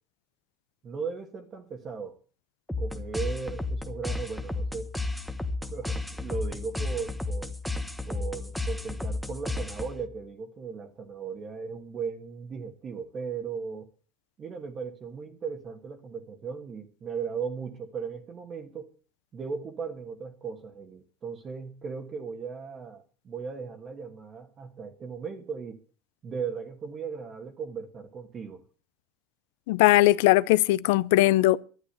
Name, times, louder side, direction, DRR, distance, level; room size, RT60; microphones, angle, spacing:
voice 1, 0.8-2.2 2.8-4.9 5.6-7.5 8.0-13.9 14.4-18.9 19.3-25.8 26.2-28.6, right 5 dB, 30° right, 1.6 m, -37 dB
sound 1, 2.7-10.1, left 2 dB, ahead, 1.2 m, -33 dB
voice 2, 29.7-31.6, left 17 dB, 85° left, 0.6 m, -20 dB
12.0 x 9.6 x 8.1 m
cardioid pair, 150°, 0 cm